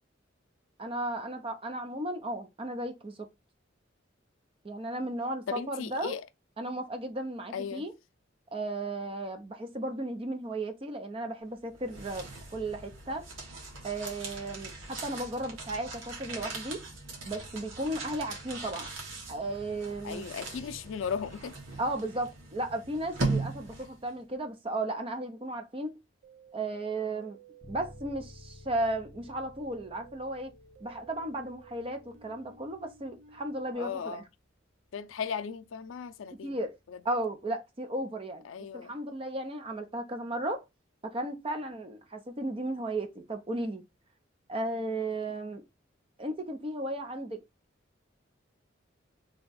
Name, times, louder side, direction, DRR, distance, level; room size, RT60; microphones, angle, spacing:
voice 1, 0.8-3.3 4.6-6.2 6.6-7.9 8.5-13.2 13.8-16.8 17.2-18.9 19.3-20.3 21.8-25.9 26.5-27.4 27.7-30.5 30.8-34.2 36.4-36.8 37.0-38.5 38.7-40.6 41.0-43.8 44.5-45.6 46.2-47.4, right 1 dB, 30° right, 0.6 m, -35 dB
voice 2, 5.5-6.2 7.5-7.9 20.0-21.5 33.7-34.2 34.9-36.6 36.9-37.0 38.4-38.9, left 6 dB, 80° left, 0.4 m, -36 dB
sound 1, 11.6-24.1, right 3 dB, 85° right, 1.1 m, -39 dB
sound 2, 26.2-33.7, right 5 dB, 65° right, 0.7 m, -56 dB
Bass guitar, 27.6-37.3, left 2 dB, 20° left, 0.5 m, -56 dB
3.5 x 2.2 x 3.9 m
head